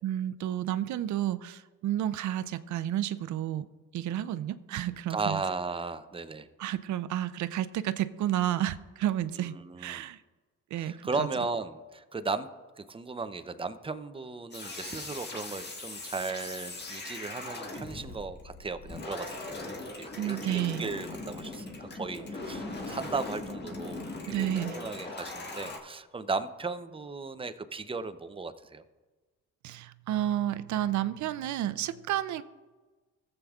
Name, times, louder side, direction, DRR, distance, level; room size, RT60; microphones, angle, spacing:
voice 1, 0.0-3.7 3.9-5.4 6.6-10.2 10.7-11.3 20.1-20.9 24.3-24.8 29.6-32.4, right 12 dB, 70° right, 14 dB, 0.5 m, -31 dB
voice 2, 5.1-6.5 9.4-10.0 10.7-12.5 12.8-28.8, right 4 dB, 20° right, 11 dB, 0.6 m, -36 dB
sound 1, 14.5-25.8, left 2 dB, 35° left, 1.5 m, -40 dB
15.0 x 7.9 x 2.4 m, 1.3 s
cardioid pair, 90°, 30 cm